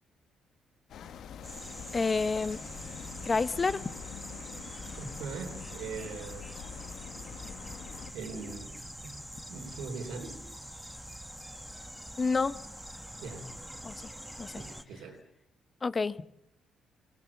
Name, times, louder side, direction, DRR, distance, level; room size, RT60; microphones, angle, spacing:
sound 1, 0.9-8.1, left 8 dB, 70° left, 1.1 m, -45 dB
sound 2, 1.4-14.8, equal, ahead, 1.3 m, -45 dB
voice 1, 1.9-2.6 3.2-3.8 12.2-12.6 13.8-14.1 14.4-14.5 15.8-16.3, left 4 dB, 30° left, 16 dB, 0.8 m, -29 dB
voice 2, 5.0-6.5 7.5-7.6 8.1-8.7 9.0-9.2 9.5-10.4 13.2-13.6 14.6-15.2, right 4 dB, 90° right, 5 dB, 3.5 m, -41 dB
26.0 x 18.0 x 7.1 m, 0.77 s
cardioid pair, 90°, 0 cm